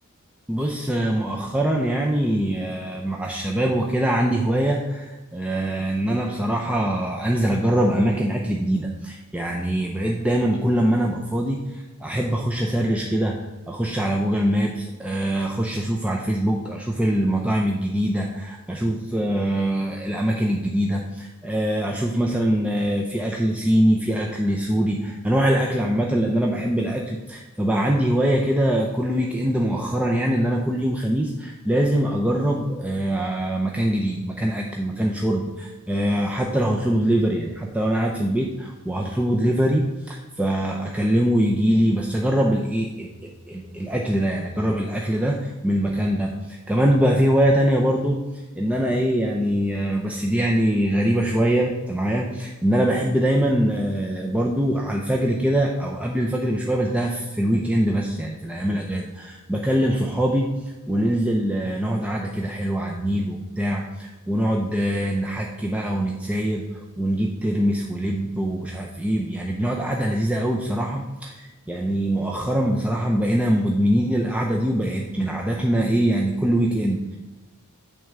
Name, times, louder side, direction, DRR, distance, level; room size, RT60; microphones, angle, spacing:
voice 1, 0.5-48.2 48.6-77.2, right 1 dB, 5° right, -1 dB, 0.5 m, -23 dB
8.9 x 3.5 x 6.6 m, 1.1 s
head